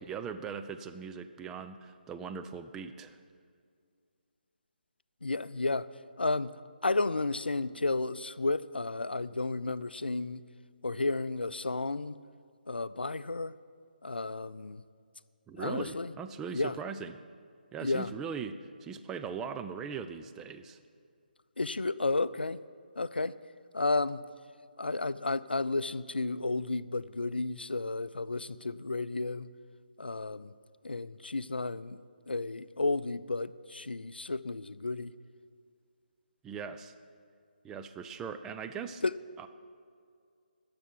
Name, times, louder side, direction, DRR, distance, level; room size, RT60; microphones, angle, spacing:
voice 1, 0.1-3.2 15.5-17.2 17.7-20.8 36.4-36.9 37.6-39.0 39.4-39.5, right 6 dB, 10° right, 8 dB, 0.4 m, -40 dB
voice 2, 5.2-5.9 6.2-6.5 6.8-10.4 10.8-12.2 12.7-13.5 14.0-14.8 15.6-16.1 16.5-16.8 17.8-18.1 21.6-22.6 23.0-23.4 23.7-24.2 24.8-29.5 30.0-30.5 30.8-32.0 32.3-35.1 39.0-39.1, left 3 dB, 80° left, 16 dB, 0.5 m, -32 dB
12.5 x 6.9 x 10.0 m, 2.2 s
figure-of-eight pair, 150°, 5 cm